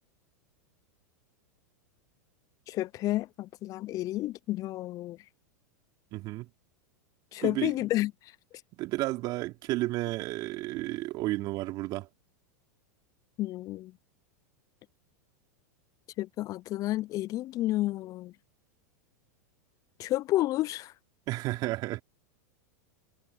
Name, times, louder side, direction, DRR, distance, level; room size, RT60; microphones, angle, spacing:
voice 1, 2.7-5.2 7.3-8.1 13.4-13.9 16.2-18.3 20.0-20.9, left 16 dB, 40° left, 0.6 m, -30 dB
voice 2, 6.1-6.5 7.4-7.7 8.8-12.1 21.3-22.0, right 19 dB, 45° right, 3.3 m, -32 dB
hypercardioid pair, 100°, 9 cm